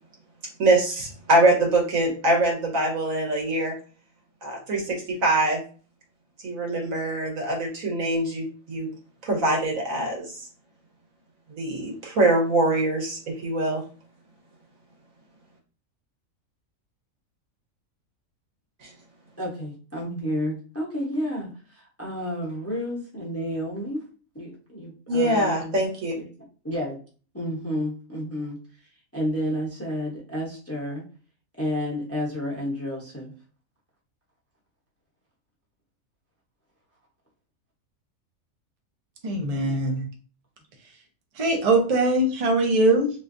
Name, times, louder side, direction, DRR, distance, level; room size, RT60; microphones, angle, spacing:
voice 1, 0.6-3.7 4.4-5.6 6.4-8.9 9.2-10.5 11.6-13.8 18.8-18.9 25.1-26.1, right 2 dB, 70° right, 0 dB, 1.5 m, -23 dB
voice 2, 19.4-24.1 24.3-25.8 26.1-27.0 27.3-31.1 31.6-33.3 39.5-40.0, equal, 15° left, -3 dB, 0.6 m, -31 dB
voice 3, 39.2-40.0 41.4-43.1, right 2 dB, 45° right, 2 dB, 0.5 m, -21 dB
3.3 x 3.1 x 2.6 m, 0.39 s
omnidirectional pair, 1.5 m